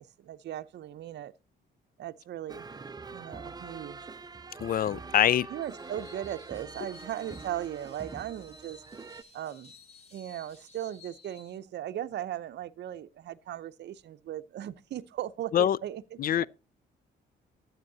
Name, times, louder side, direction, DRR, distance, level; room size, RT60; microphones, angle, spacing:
voice 1, 0.0-1.3 2.0-2.7 3.1-4.1 5.5-8.8 9.3-9.7 10.1-16.2, right 11 dB, 60° right, 0.6 m, -38 dB
sound 1, 2.5-9.2, right 4 dB, 20° right, 0.5 m, -44 dB
voice 2, 4.6-5.5 15.5-15.8 16.2-16.5, left 10 dB, 50° left, 0.4 m, -24 dB
Screech, 5.5-11.6, left 3 dB, 30° left, 2.0 m, -55 dB
12.5 x 8.0 x 2.7 m
cardioid pair, 90°, 20 cm